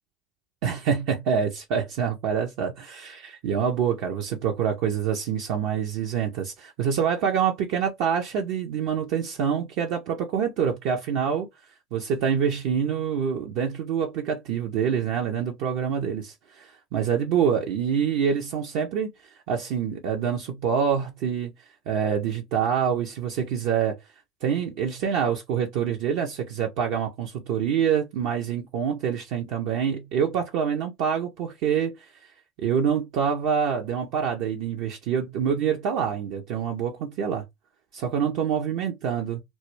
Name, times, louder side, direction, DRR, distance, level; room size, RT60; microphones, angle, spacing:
voice 1, 0.6-11.5 11.9-21.5 21.9-24.0 24.4-32.1 32.6-37.4 37.9-39.4, right 7 dB, 65° right, 0.5 m, -26 dB
2.2 x 2.1 x 3.0 m
hypercardioid pair, 80°, 0 cm